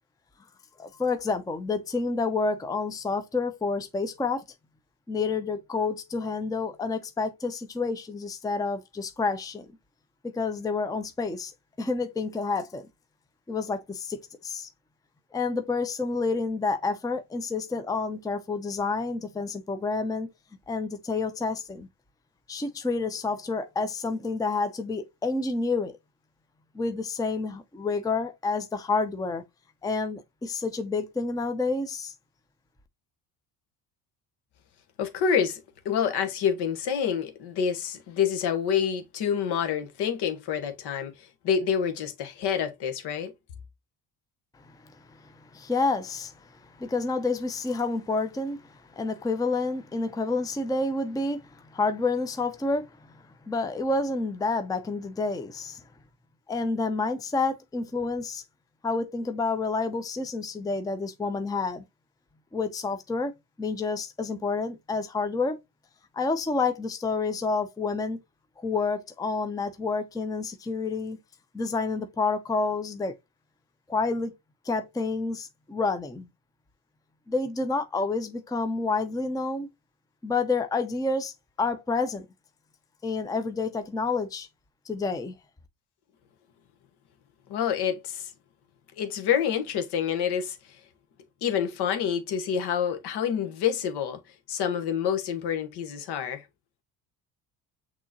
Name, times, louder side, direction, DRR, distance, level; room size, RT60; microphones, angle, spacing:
voice 1, 0.8-4.4 5.1-9.7 10.2-11.5 11.8-12.9 13.5-14.7 15.3-20.3 20.7-21.9 22.5-26.0 26.7-29.4 29.8-32.1 44.8-55.8 56.5-58.4 58.8-61.8 62.5-63.3 63.6-65.6 66.1-68.2 68.6-71.2 71.5-73.1 73.9-74.3 74.6-76.3 77.3-79.7 80.2-82.3 83.0-84.5 84.9-85.3, left 3 dB, 10° left, 0.6 m, -29 dB
voice 2, 35.0-35.6 35.8-43.3 87.5-88.3 89.0-90.6 91.4-94.2 94.5-96.4, left 8 dB, 60° left, 1.2 m, -27 dB
6.1 x 3.0 x 2.7 m
hypercardioid pair, 70°, 44 cm